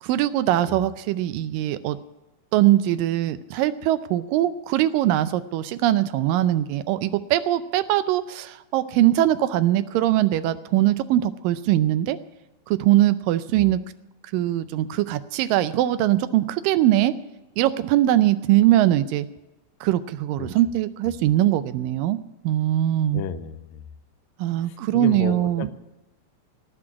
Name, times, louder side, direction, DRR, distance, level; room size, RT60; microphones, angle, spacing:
voice 1, 0.0-2.0 2.5-12.2 12.7-13.8 14.3-17.1 17.6-19.3 19.8-22.2 22.4-23.2 24.4-25.7, right 13 dB, 80° right, 13 dB, 2.2 m, -21 dB
voice 2, 23.1-23.9 24.6-25.7, left 8 dB, 80° left, 10 dB, 2.4 m, -33 dB
17.5 x 6.2 x 9.6 m, 1.0 s
omnidirectional pair, 4.1 m